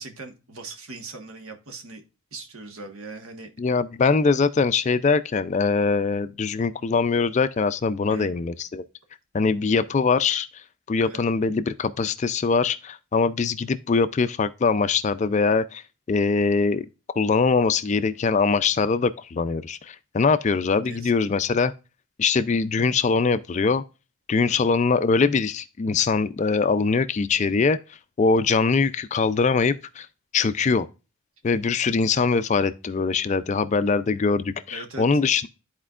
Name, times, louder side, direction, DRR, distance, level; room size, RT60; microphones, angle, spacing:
voice 1, 0.0-2.0 2.3-3.5 8.1-8.3 11.0-11.2 20.8-21.1 24.4-24.7 34.7-35.1, right 3 dB, 75° right, 1.3 m, -40 dB
voice 2, 3.6-8.8 9.3-10.5 10.9-15.8 16.1-16.9 17.1-21.7 22.2-23.8 24.3-27.8 28.2-30.1 30.3-30.9 31.4-35.5, left 4 dB, 30° left, 0.3 m, -22 dB
12.5 x 4.4 x 2.4 m
head